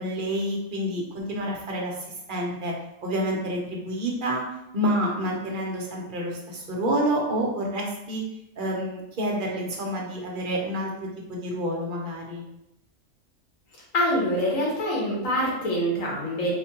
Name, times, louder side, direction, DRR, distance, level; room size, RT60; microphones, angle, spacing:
voice 1, 0.0-2.0 2.3-2.7 3.0-4.4 4.7-8.2 8.6-12.4, equal, 50° right, -1 dB, 0.8 m, -28 dB
voice 2, 13.9-16.5, equal, 85° left, -4 dB, 1.5 m, -25 dB
4.3 x 2.2 x 2.8 m, 0.84 s
omnidirectional pair, 1.3 m